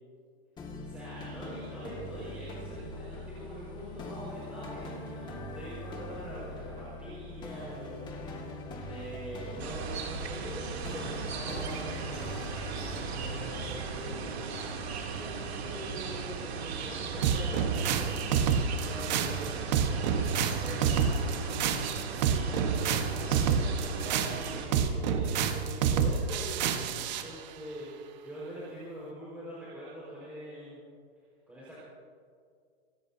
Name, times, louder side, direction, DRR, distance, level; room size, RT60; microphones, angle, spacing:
sound 1, 0.6-14.3, left 2 dB, 15° left, 1.9 m, -42 dB
voice 1, 0.8-12.4 13.2-18.2 18.7-21.6 22.2-30.8 31.5-31.8, right 1 dB, 5° right, -9 dB, 4.8 m, -44 dB
sound 2, 9.6-24.7, right 5 dB, 85° right, 2.9 m, -37 dB
sound 3, 17.2-27.3, right 7 dB, 45° right, 1.3 m, -28 dB
27.5 x 16.5 x 2.8 m, 2.1 s
supercardioid pair, 160°, 31 cm